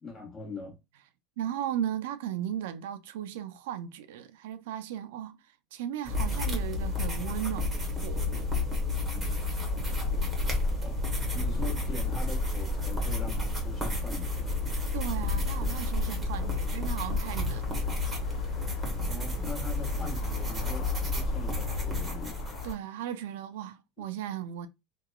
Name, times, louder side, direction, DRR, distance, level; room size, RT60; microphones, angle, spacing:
voice 1, 0.0-0.8 10.8-11.0 11.3-14.6 19.0-22.4, left 3 dB, 25° left, 1.2 m, -42 dB
voice 2, 1.4-8.7 14.9-17.9 22.6-24.7, right 10 dB, 80° right, 0.3 m, -36 dB
sound 1, 6.1-22.7, left 2 dB, 15° right, 1.0 m, -31 dB
sound 2, 9.6-22.7, equal, 60° left, 0.3 m, -38 dB
2.8 x 2.2 x 2.2 m
supercardioid pair, 125°, 0 cm